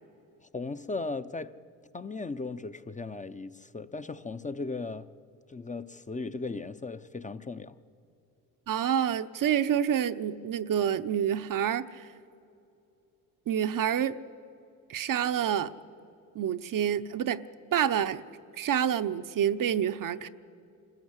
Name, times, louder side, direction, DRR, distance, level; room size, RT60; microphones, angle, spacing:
voice 1, 0.5-1.5 1.9-5.1 5.5-7.8, left 3 dB, 20° left, 0.7 m, -37 dB
voice 2, 8.7-12.1 13.5-14.2 14.9-15.7 16.3-17.4 17.7-18.2 18.6-20.3, right 9 dB, 55° right, 0.8 m, -28 dB
26.0 x 14.0 x 8.1 m
supercardioid pair, 65°, 40 cm